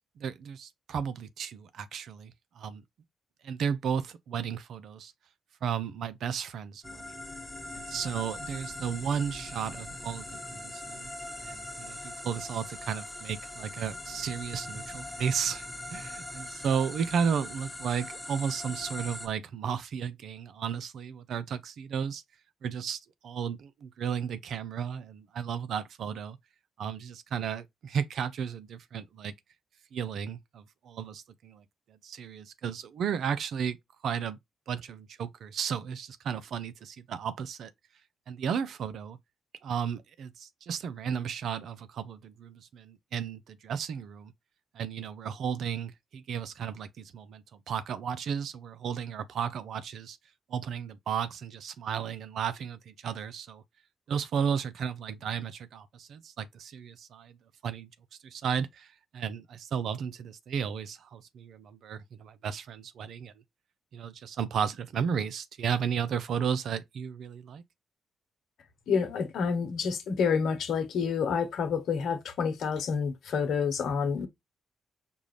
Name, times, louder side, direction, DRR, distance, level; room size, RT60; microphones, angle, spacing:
voice 1, 0.2-2.8 3.4-5.1 5.6-7.1 7.7-11.1 11.4-22.2 22.6-26.4 26.8-29.3 29.9-31.6 32.0-33.8 34.0-34.4 34.7-37.7 38.3-39.2 39.6-44.3 44.7-50.2 50.5-53.6 54.1-57.4 57.6-57.9 58.2-63.3 63.9-67.6, right 7 dB, 70° right, 0.5 m, -34 dB
sound 1, 6.8-19.3, left 1 dB, 10° left, 1.4 m, -41 dB
voice 2, 68.9-74.3, left 6 dB, 70° left, 0.8 m, -28 dB
5.3 x 2.4 x 3.2 m
hypercardioid pair, 45°, 0 cm